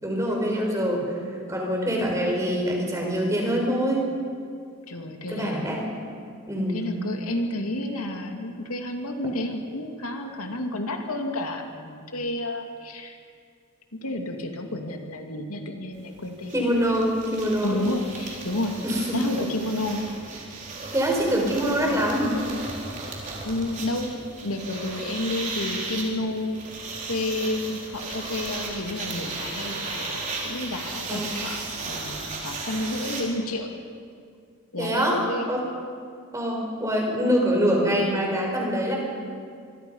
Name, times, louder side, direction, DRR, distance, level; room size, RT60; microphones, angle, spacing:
voice 1, 0.0-1.1 1.5-4.1 5.3-5.9 6.5-6.8 16.5-17.8 18.8-19.2 20.9-22.4 31.1-31.3 34.8-35.2 35.5-35.6 36.3-39.0, equal, 15° right, -1 dB, 4.7 m, -24 dB
voice 2, 4.9-5.8 6.7-13.2 14.0-16.5 17.6-18.8 19.1-20.1 23.4-26.6 27.0-33.7 34.7-35.5, left 1 dB, 85° left, 3 dB, 2.4 m, -30 dB
sound 1, 16.0-16.1 16.2-33.2, right 3 dB, 35° right, 4.1 m, -35 dB
25.5 x 23.0 x 5.6 m, 2.2 s
head